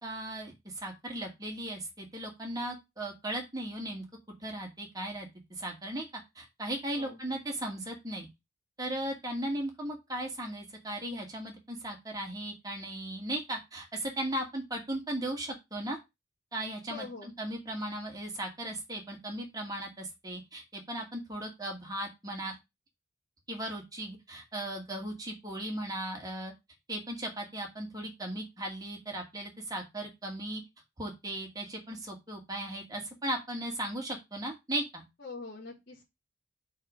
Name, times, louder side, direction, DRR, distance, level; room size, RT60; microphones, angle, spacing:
voice 1, 0.0-4.0 4.4-6.1 6.4-8.3 8.8-16.0 16.5-22.5 23.5-26.5 26.9-30.6 31.0-35.0, right 1 dB, 20° right, 1 dB, 2.3 m, -37 dB
voice 2, 16.9-17.3 35.2-36.0, left 4 dB, 55° left, -8 dB, 3.0 m, -43 dB
5.3 x 4.6 x 6.3 m, 0.22 s
head